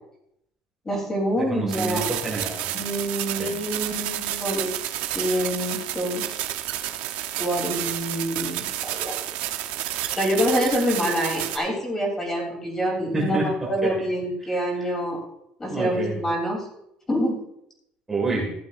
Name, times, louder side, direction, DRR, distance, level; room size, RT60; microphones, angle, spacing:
voice 1, 0.8-2.1 2.7-4.7 5.1-6.4 7.4-9.2 9.9-15.2 15.6-16.7 17.1-17.4, equal, 15° left, -1 dB, 3.3 m, -26 dB
voice 2, 1.4-2.8 3.4-3.6 13.1-13.9 14.8-14.9 15.7-16.2 18.1-18.5, right 3 dB, 10° right, -5 dB, 2.0 m, -28 dB
sound 1, 1.7-11.6, right 13 dB, 70° right, 0.9 m, -30 dB
15.0 x 11.0 x 2.6 m, 0.77 s
cardioid pair, 180°, 3 cm